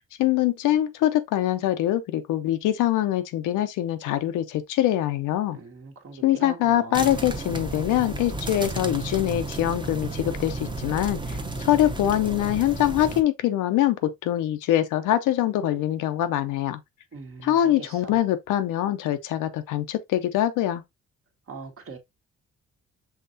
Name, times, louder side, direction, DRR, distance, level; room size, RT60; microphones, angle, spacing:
voice 1, 0.2-5.6 6.2-16.8 17.4-20.8, left 12 dB, 90° left, 0.7 m, -24 dB
voice 2, 5.5-7.4 17.1-18.2 21.5-22.0, right 4 dB, 45° right, 1.3 m, -41 dB
sound 1, 6.9-13.2, right 2 dB, 15° right, 0.8 m, -33 dB
5.7 x 3.2 x 2.6 m
cardioid pair, 90°, 30 cm